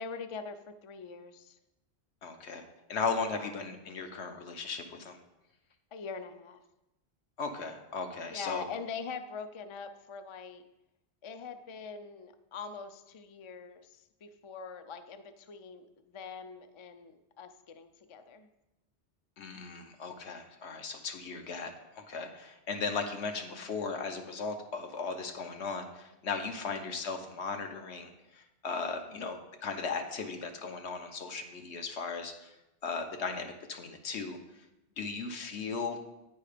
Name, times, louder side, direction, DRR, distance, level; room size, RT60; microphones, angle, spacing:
voice 1, 0.0-1.6 3.3-3.5 5.9-6.6 8.3-10.6 11.2-18.5 26.6-26.8 29.1-29.3, left 5 dB, 50° left, 9 dB, 0.3 m, -43 dB
voice 2, 2.2-2.6 2.9-5.2 7.4-8.7 19.4-32.6 32.8-34.6 35.0-36.0, left 4 dB, 75° left, 5 dB, 1.1 m, -37 dB
9.3 x 4.6 x 5.0 m, 0.95 s
omnidirectional pair, 1.1 m